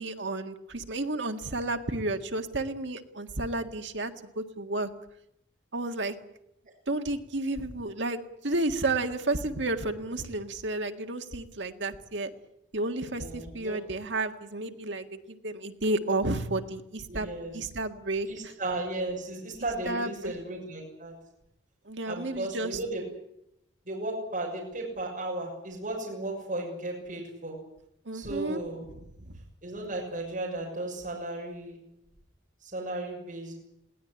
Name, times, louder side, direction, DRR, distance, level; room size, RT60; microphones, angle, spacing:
voice 1, 0.0-4.9 5.7-6.2 6.9-12.3 12.7-17.3 17.5-18.5 19.9-20.3 21.9-22.8 28.1-28.6 29.0-29.3, right 2 dB, 75° right, 6 dB, 1.8 m, -32 dB
voice 2, 13.2-13.8 17.1-17.5 18.2-21.1 22.1-23.0 23.9-27.6 28.1-28.9 29.6-31.8 32.6-33.5, right 2 dB, 45° right, -2 dB, 6.7 m, -35 dB
21.5 x 18.0 x 9.9 m, 0.80 s
head